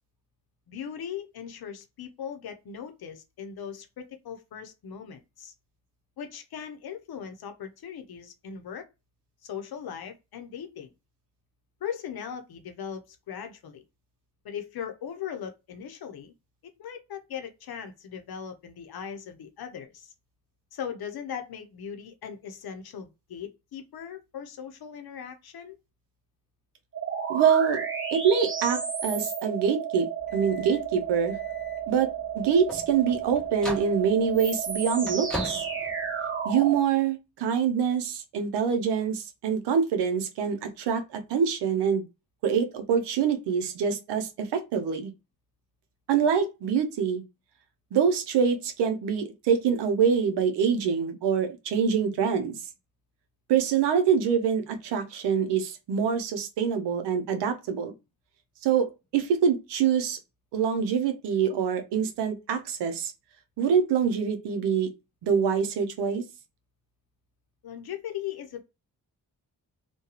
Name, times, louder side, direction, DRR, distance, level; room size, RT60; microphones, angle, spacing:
voice 1, 0.7-5.5 6.2-8.8 9.4-10.9 11.8-13.8 14.4-16.3 16.8-20.1 20.7-25.8 67.6-68.6, left 8 dB, 65° left, 0.7 m, -39 dB
sound 1, 26.9-36.8, right 7 dB, 30° right, 0.9 m, -32 dB
voice 2, 27.3-27.8 28.1-30.1 30.3-31.4 31.9-35.6 36.4-42.0 42.4-45.1 46.1-47.2 47.9-52.6 53.5-57.9 58.6-60.2 60.5-63.1 63.6-64.9 65.2-66.2, right 7 dB, 90° right, 0.5 m, -25 dB
sound 2, 30.2-36.7, equal, ahead, 1.0 m, -41 dB
2.3 x 2.2 x 2.8 m
supercardioid pair, 45°, 40 cm